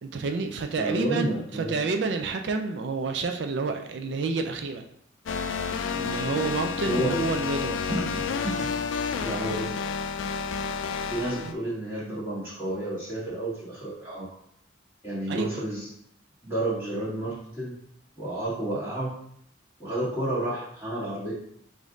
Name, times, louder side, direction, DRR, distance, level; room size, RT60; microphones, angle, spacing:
voice 1, 0.0-4.8 5.9-7.8 11.3-11.5 15.3-15.5, right 4 dB, 65° right, 5 dB, 0.4 m, -29 dB
voice 2, 0.8-1.8 6.8-7.2 7.9-8.8 9.2-9.8 11.1-14.3 15.0-15.9 16.4-17.7 18.2-19.1 19.8-21.3, right 1 dB, 15° right, -10 dB, 1.6 m, -31 dB
sound 1, 5.3-11.5, left 6 dB, 85° left, 0.4 m, -30 dB
5.1 x 2.6 x 3.8 m, 0.68 s
head